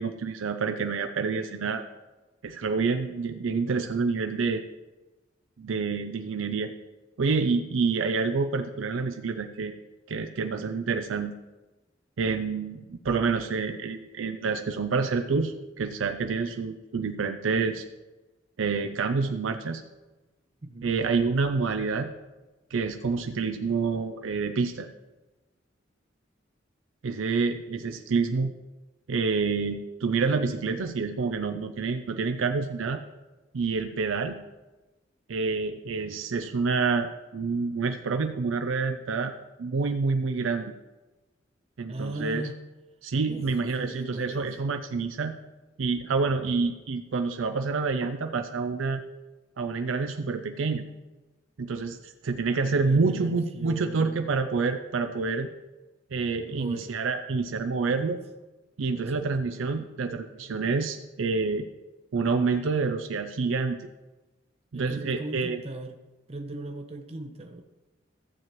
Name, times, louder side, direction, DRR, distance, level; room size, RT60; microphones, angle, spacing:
voice 1, 0.0-1.8 2.4-4.6 5.6-6.7 7.2-9.8 10.1-11.3 12.2-17.8 18.6-19.8 20.8-22.1 22.7-24.9 27.0-28.5 29.1-33.0 33.5-34.4 35.3-37.1 37.3-39.3 39.6-40.7 41.8-42.4 43.0-45.3 45.8-49.0 49.6-50.9 51.6-55.5 56.1-58.2 58.8-61.7 62.1-63.8 64.7-65.6, right 4 dB, 90° right, 6 dB, 0.5 m, -28 dB
voice 2, 20.6-20.9 41.9-42.6 43.2-43.5 43.8-44.5 52.8-54.3 56.5-57.0 58.9-59.2 64.7-66.0 66.3-67.6, right 1 dB, 30° right, 4 dB, 0.7 m, -38 dB
14.5 x 7.5 x 3.1 m, 1.1 s
head